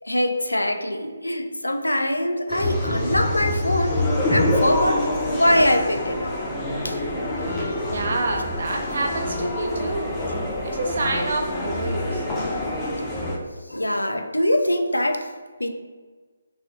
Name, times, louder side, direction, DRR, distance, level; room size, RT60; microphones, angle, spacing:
voice 1, 0.0-4.0 4.3-5.0 5.3-6.4 6.8-7.0 7.6-7.8 12.8-13.1 13.7-15.3 15.6-15.7, left 1 dB, 85° left, 6 dB, 0.3 m, -23 dB
sound 1, 2.5-13.4, left 1 dB, 15° left, 0.5 m, -26 dB
voice 2, 7.4-10.2 10.6-12.3, right 2 dB, 50° right, 2 dB, 0.5 m, -28 dB
3.1 x 2.7 x 2.5 m, 1.4 s
figure-of-eight pair, 145°, 0 cm